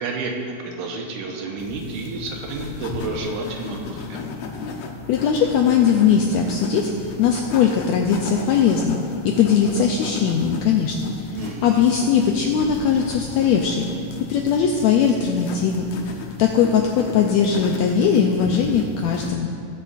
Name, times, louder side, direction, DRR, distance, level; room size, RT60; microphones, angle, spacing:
voice 1, 0.0-4.3 11.3-11.8, right 3 dB, 80° right, 1 dB, 2.3 m, -30 dB
sound 1, 1.6-19.3, left 5 dB, 75° left, 1.5 m, -34 dB
voice 2, 5.1-9.0 9.2-13.8 14.3-15.9 16.4-19.5, left 7 dB, 90° left, 2 dB, 1.5 m, -20 dB
19.0 x 6.8 x 2.5 m, 2.4 s
omnidirectional pair, 3.7 m